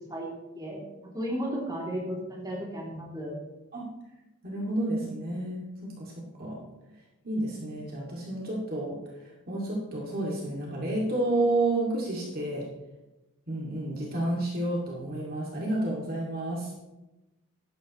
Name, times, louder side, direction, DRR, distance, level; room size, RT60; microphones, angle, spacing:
voice 1, 0.5-3.3, equal, 20° right, -4 dB, 2.8 m, -34 dB
voice 2, 4.4-6.1 6.4-6.6 7.2-12.6 13.5-16.7, right 1 dB, 45° right, -3 dB, 2.4 m, -30 dB
14.5 x 11.5 x 3.1 m, 1.0 s
head